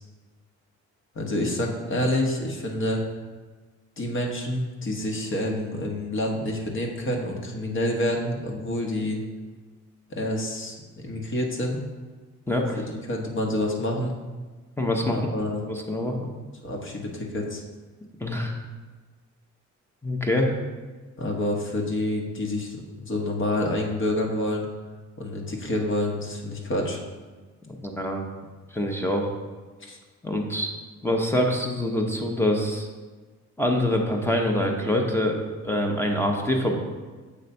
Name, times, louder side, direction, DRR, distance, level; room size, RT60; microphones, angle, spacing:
voice 1, 1.1-3.0 4.0-9.2 10.1-10.8 11.0-11.8 12.8-14.1 15.1-15.6 16.6-17.6 21.2-24.7 25.2-27.0 29.9-30.0, left 1 dB, 40° left, 1 dB, 1.2 m, -28 dB
voice 2, 12.5-12.8 14.8-15.2 15.6-16.3 18.2-18.6 20.0-20.5 27.7-28.2 28.7-29.3 30.2-30.7 31.0-32.9 33.6-35.4 35.6-36.8, left 1 dB, 10° left, 1 dB, 0.9 m, -25 dB
6.8 x 3.2 x 5.3 m, 1.4 s
cardioid pair, 90°, 30 cm